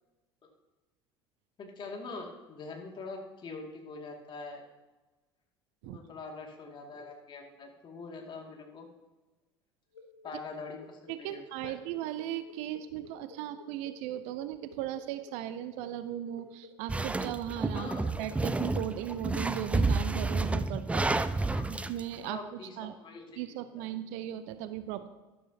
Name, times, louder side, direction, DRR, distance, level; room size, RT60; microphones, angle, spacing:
voice 1, 1.6-4.6 5.8-8.9 10.2-11.7 17.7-18.1 21.5-21.7 22.2-23.9, left 3 dB, 35° left, 1 dB, 2.3 m, -44 dB
sound 1, 9.9-19.8, left 4 dB, 80° left, 1.2 m, -53 dB
voice 2, 11.1-17.9 18.2-21.1 21.7-23.0 23.4-25.1, right 12 dB, 55° right, 12 dB, 0.6 m, -37 dB
sound 2, 16.9-22.0, right 3 dB, 10° right, 0.5 m, -30 dB
12.5 x 11.5 x 2.8 m, 1.1 s
figure-of-eight pair, 65°, 14 cm